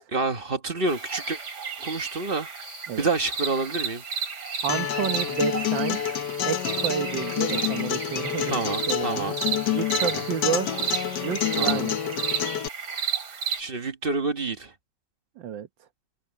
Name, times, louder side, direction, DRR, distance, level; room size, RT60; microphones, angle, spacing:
voice 1, 0.0-1.4 1.8-2.5 3.0-4.0 8.5-9.4 10.0-10.2 11.6-11.9 13.6-14.7, right 3 dB, 35° right, 1.2 m, -28 dB
sound 1, 0.9-13.6, right 6 dB, 65° right, 3.0 m, -32 dB
voice 2, 4.6-6.2 6.4-8.6 8.9-9.3 9.7-10.7 11.2-12.0 15.4-15.7, right 9 dB, 85° right, 1.8 m, -30 dB
Acoustic guitar, 4.7-12.7, left 10 dB, 70° left, 1.6 m, -28 dB
omnidirectional pair, 2.0 m